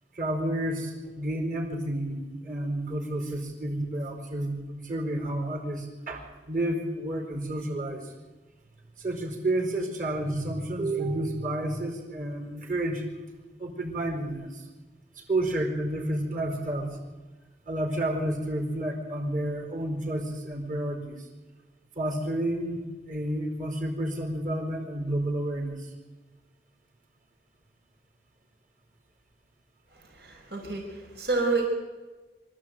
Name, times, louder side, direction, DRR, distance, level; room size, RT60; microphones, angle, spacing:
voice 1, 0.1-8.1 9.0-13.0 13.6-14.7 15.1-17.0 17.7-21.2 22.0-22.8 23.1-25.9, right 1 dB, 45° right, 1 dB, 4.5 m, -30 dB
voice 2, 30.1-31.7, right 3 dB, 70° right, 1 dB, 4.9 m, -29 dB
24.5 x 14.0 x 9.0 m, 1.2 s
head